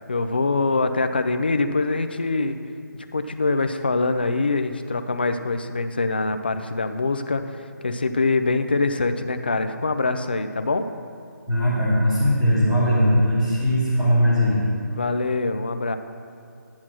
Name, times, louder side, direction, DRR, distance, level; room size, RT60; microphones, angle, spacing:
voice 1, 0.1-2.6 3.1-10.9 14.9-16.0, left 3 dB, 30° left, 9 dB, 0.4 m, -24 dB
voice 2, 11.5-14.6, equal, 5° right, -9 dB, 1.2 m, -19 dB
10.5 x 5.8 x 6.1 m, 2.5 s
hypercardioid pair, 180°, 10 cm